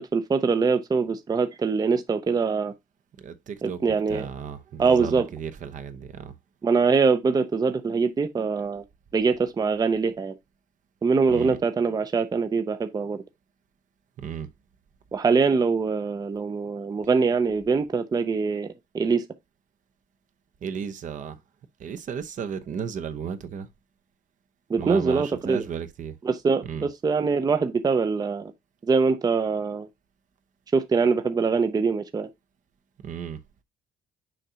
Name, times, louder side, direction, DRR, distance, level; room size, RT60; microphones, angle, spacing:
voice 1, 0.0-2.7 3.6-4.2 4.8-5.3 6.6-8.8 9.1-10.3 11.0-13.2 15.1-18.7 18.9-19.3 24.7-25.6 26.3-28.5 28.8-29.9 30.7-32.3, right 5 dB, 20° right, 0.6 m, -23 dB
voice 2, 3.2-6.4 11.3-11.6 14.2-14.5 20.6-21.4 21.8-23.7 24.8-26.2 26.6-26.9 33.0-33.4, right 7 dB, 50° right, 0.8 m, -34 dB
6.4 x 2.8 x 5.6 m
cardioid pair, 110°, 17 cm